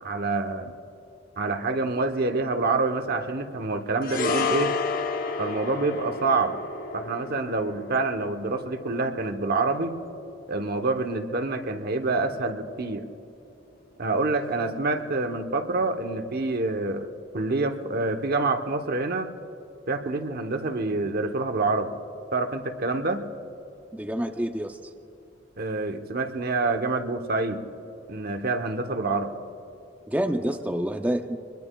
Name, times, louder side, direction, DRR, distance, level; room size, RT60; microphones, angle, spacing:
voice 1, 0.0-0.7 1.4-4.8 5.4-6.6 6.9-10.0 10.5-13.0 14.0-17.1 17.3-19.3 19.9-21.9 22.3-23.2 25.6-27.6 28.1-29.3, right 3 dB, 55° right, 6 dB, 1.0 m, -27 dB
sound 1, 4.0-12.5 12.8-13.0, left 4 dB, 50° left, 0.9 m, -32 dB
voice 2, 23.9-24.8 30.1-31.4, right 1 dB, 10° right, 5 dB, 0.5 m, -27 dB
24.0 x 21.5 x 2.3 m, 2.7 s
head